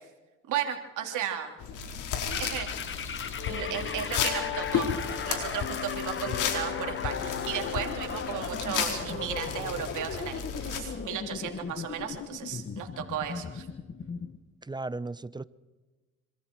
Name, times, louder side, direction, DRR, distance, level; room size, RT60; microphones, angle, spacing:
voice 1, 0.5-1.6 2.4-2.9 3.5-13.7, right 9 dB, 80° right, 4 dB, 3.3 m, -35 dB
sound 1, 1.6-10.8, left 7 dB, 85° left, 4.3 m, -34 dB
sound 2, 2.3-14.4, left 6 dB, 40° left, 1.6 m, -38 dB
sound 3, 3.4-8.4, left 12 dB, 65° left, 1.0 m, -37 dB
voice 2, 14.6-15.4, right 2 dB, 15° right, 17 dB, 0.8 m, -36 dB
26.5 x 26.0 x 4.7 m, 1.2 s
cardioid pair, 90°, 30 cm